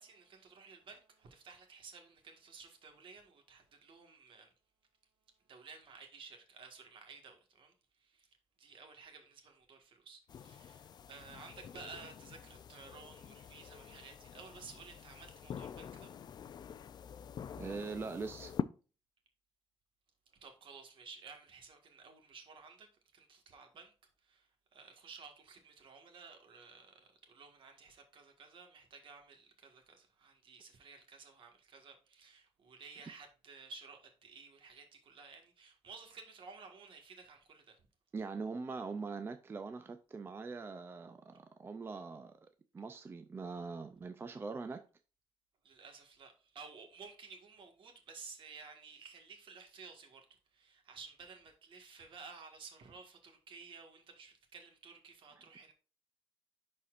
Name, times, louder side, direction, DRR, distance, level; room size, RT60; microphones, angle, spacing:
voice 1, 0.0-4.5 5.5-7.7 8.0-8.3 8.6-16.1 20.3-23.9 24.2-37.8 45.6-50.2 50.5-55.7, right 5 dB, 65° right, 1.6 m, -54 dB
sound 1, 10.3-18.6, left 8 dB, 50° left, 0.4 m, -46 dB
voice 2, 17.6-18.5 38.1-42.5 42.7-44.8, right 4 dB, 25° right, 0.4 m, -42 dB
11.0 x 4.3 x 2.5 m
cardioid pair, 140°, 9 cm